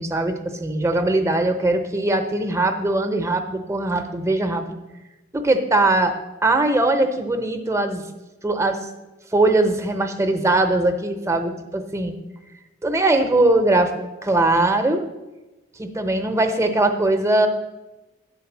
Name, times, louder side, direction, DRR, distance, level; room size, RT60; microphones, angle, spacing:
voice 1, 0.0-4.8 5.3-6.2 6.4-8.0 8.4-8.9 9.3-12.2 12.8-13.9 14.2-15.0 15.8-17.5, right 2 dB, 15° right, 7 dB, 0.7 m, -20 dB
9.5 x 4.1 x 7.2 m, 1.1 s
head